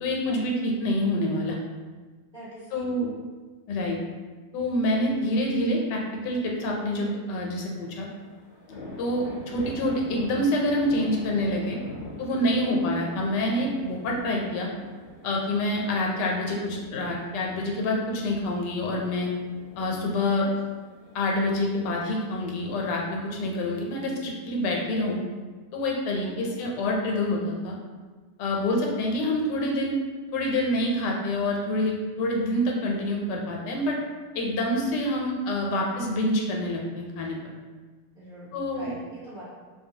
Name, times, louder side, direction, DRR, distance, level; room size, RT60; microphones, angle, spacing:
voice 1, 0.0-1.6 2.7-3.1 3.7-4.0 4.5-8.1 9.0-11.8 12.2-14.7 15.2-19.3 19.8-20.5 21.1-25.2 25.7-27.8 28.4-30.0 30.3-34.0 34.3-37.4 38.5-38.9, left 1 dB, 85° left, -1 dB, 1.2 m, -27 dB
voice 2, 2.3-2.9 12.7-13.0 20.4-20.5 26.2-26.6 38.1-39.4, right 1 dB, 50° right, -12 dB, 0.5 m, -43 dB
sound 1, 7.8-24.1, left 1 dB, 60° left, 0.7 m, -44 dB
2.6 x 2.2 x 2.7 m, 1.4 s
omnidirectional pair, 1.8 m